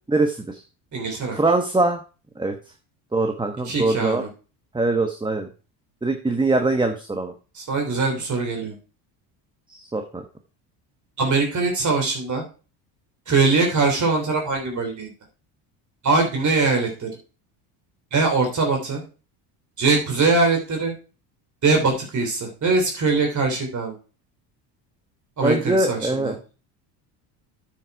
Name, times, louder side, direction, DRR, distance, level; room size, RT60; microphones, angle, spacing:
voice 1, 0.1-0.6 1.3-2.0 2.4-2.5 3.1-4.2 4.7-5.5 6.0-7.3 9.7-10.2 25.4-26.3, right 2 dB, 10° right, 5 dB, 1.1 m, -22 dB
voice 2, 0.9-1.4 3.6-4.3 7.5-8.7 11.2-12.4 13.3-15.1 16.0-17.1 18.1-19.0 19.8-20.9 21.6-23.9 25.4-26.3, right 3 dB, 40° right, 2 dB, 3.2 m, -22 dB
8.9 x 6.4 x 4.7 m, 0.35 s
supercardioid pair, 90°, 45 cm